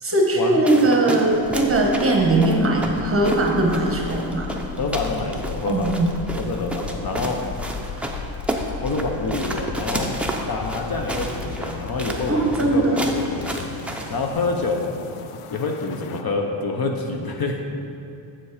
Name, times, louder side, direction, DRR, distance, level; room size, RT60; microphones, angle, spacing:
voice 1, 0.0-4.5 5.6-6.1 12.3-13.0, right 2 dB, 25° right, 0 dB, 1.1 m, -20 dB
sound 1, 0.7-14.3, right 1 dB, 5° right, 0.5 m, -32 dB
sound 2, 1.4-16.2, left 6 dB, 90° left, 0.6 m, -36 dB
voice 2, 4.8-6.0 6.3-7.4 8.8-10.2 10.5-13.7 14.1-14.9 15.5-17.6, left 3 dB, 45° left, 2 dB, 0.7 m, -27 dB
7.6 x 7.2 x 4.9 m, 2.6 s
wide cardioid pair, 145°, 49 cm